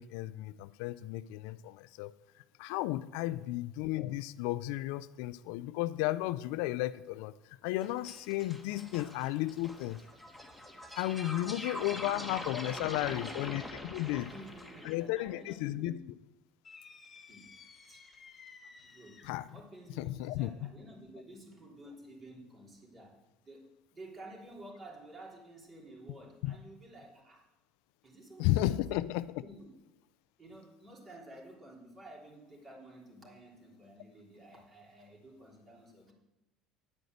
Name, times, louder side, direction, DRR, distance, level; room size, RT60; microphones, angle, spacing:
voice 1, 0.0-2.1 2.6-7.3 7.6-10.0 11.0-14.3 14.8-16.0 19.2-19.5 20.0-20.7 26.4-26.6 28.4-29.4, left 16 dB, 80° left, 15 dB, 0.3 m, -34 dB
voice 2, 3.1-3.4 11.2-12.2 12.5-13.7 14.1-16.0 17.3-17.5 17.9-18.0 18.8-19.2 19.5-27.4 28.0-28.8 29.4-29.7 30.4-36.1, right 1 dB, 30° right, -2 dB, 3.4 m, -52 dB
sound 1, 7.8-15.0, left 1 dB, ahead, 1.8 m, -44 dB
sound 2, 16.6-19.5, left 5 dB, 30° left, 1.0 m, -55 dB
9.8 x 5.0 x 7.9 m, 0.97 s
supercardioid pair, 100°, 0 cm